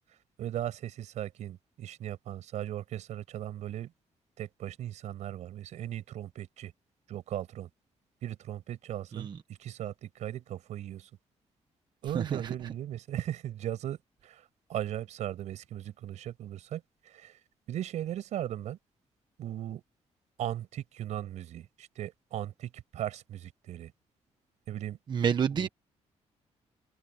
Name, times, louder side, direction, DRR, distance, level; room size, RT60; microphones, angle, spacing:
voice 1, 0.1-3.9 4.4-6.7 7.1-7.7 8.2-11.1 12.0-17.4 17.7-18.8 19.4-19.8 20.4-23.9 24.7-25.0 25.5-25.7, right 12 dB, 80° right, 6.0 m, -38 dB
voice 2, 25.1-25.7, right 7 dB, 40° right, 1.1 m, -28 dB
cardioid pair, 150°, 12 cm